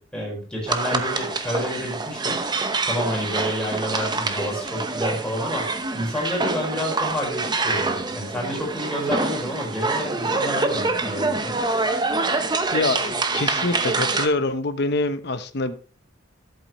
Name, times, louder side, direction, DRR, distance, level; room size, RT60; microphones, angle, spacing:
voice 1, 0.0-11.6, equal, 5° left, -3 dB, 4.6 m, -29 dB
sound 1, 0.7-14.3, right 3 dB, 20° right, 0.8 m, -26 dB
voice 2, 12.7-15.8, left 2 dB, 60° left, 11 dB, 0.9 m, -25 dB
11.5 x 8.2 x 3.1 m, 0.40 s
head